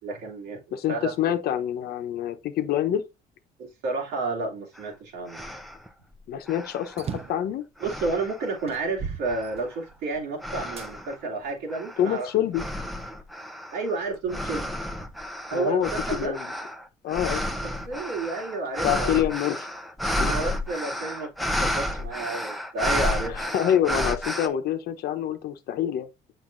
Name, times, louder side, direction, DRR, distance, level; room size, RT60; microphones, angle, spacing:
voice 1, 0.0-1.1 3.6-5.5 7.8-12.3 13.7-14.7 15.5-16.4 17.8-19.1 20.1-23.4, right 3 dB, 85° right, 2.5 m, -31 dB
voice 2, 0.7-3.0 6.3-7.6 12.0-12.6 15.5-16.5 17.0-17.4 18.8-19.7 20.1-20.4 23.3-26.1, left 10 dB, 70° left, 0.9 m, -26 dB
sound 1, 4.8-4.9 5.3-5.9 6.5-7.4 7.8-8.6 9.2-9.7 10.4-11.2 11.7-24.5, left 1 dB, ahead, 0.7 m, -31 dB
sound 2, 6.9-7.5 8.1-8.2 8.7-10.1 10.8-10.9 11.6-12.7, right 6 dB, 35° right, 0.6 m, -37 dB
7.3 x 5.7 x 2.6 m
cardioid pair, 110°, 17 cm